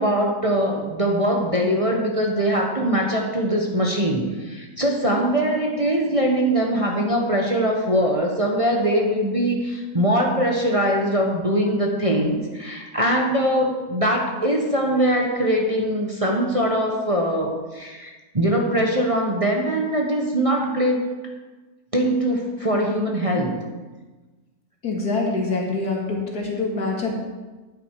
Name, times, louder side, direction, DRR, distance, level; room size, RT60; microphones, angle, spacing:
voice 1, 0.0-21.0 21.9-23.5, equal, 25° right, 0 dB, 1.2 m, -22 dB
voice 2, 24.8-27.1, left 3 dB, 70° left, -1 dB, 2.5 m, -25 dB
10.5 x 9.2 x 4.8 m, 1.3 s
omnidirectional pair, 1.7 m